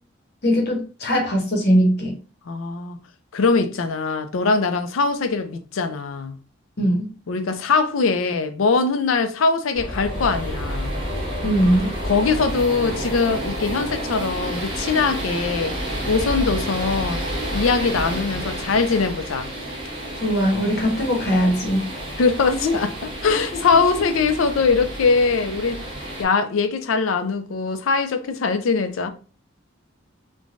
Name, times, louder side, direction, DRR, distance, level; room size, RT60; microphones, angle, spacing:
voice 1, 0.4-2.1 6.8-7.1 11.4-11.9 20.2-21.9 22.5-22.7, equal, 55° left, 0.8 m, -20 dB
voice 2, 2.5-3.0 3.3-6.4 7.3-10.9 12.0-17.2 17.5-19.5 22.2-22.9 23.2-25.8 26.2-29.1, left 4 dB, 85° left, 0.4 m, -22 dB
sound 1, 9.7-26.2, equal, 25° right, 0.8 m, -30 dB
3.2 x 2.1 x 2.5 m
head